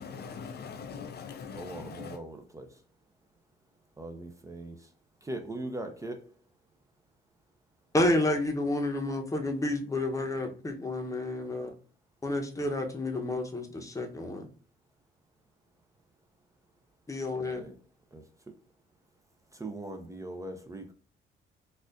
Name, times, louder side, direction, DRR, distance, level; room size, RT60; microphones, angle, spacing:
voice 1, 0.0-2.2, left 6 dB, 55° left, 0.5 m, -41 dB
voice 2, 1.5-2.8 4.0-4.9 5.2-6.3 17.3-17.8 18.1-18.6 19.5-20.9, right 2 dB, 15° right, 0.5 m, -41 dB
voice 3, 7.9-11.7 12.2-14.5 17.1-17.6, left 1 dB, 15° left, 0.8 m, -30 dB
4.2 x 2.4 x 2.4 m
cardioid pair, 90°, 20 cm